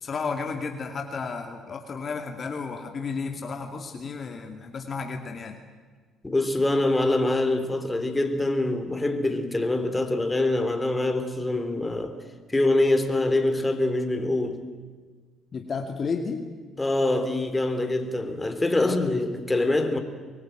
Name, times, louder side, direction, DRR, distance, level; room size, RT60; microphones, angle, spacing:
voice 1, 0.0-5.6 15.5-16.5 18.8-19.2, left 5 dB, 45° left, 2.4 m, -32 dB
voice 2, 6.2-12.2 12.5-14.6 16.8-20.0, left 2 dB, 20° left, 3.4 m, -24 dB
24.5 x 20.0 x 9.2 m
hypercardioid pair, 60°, 0 cm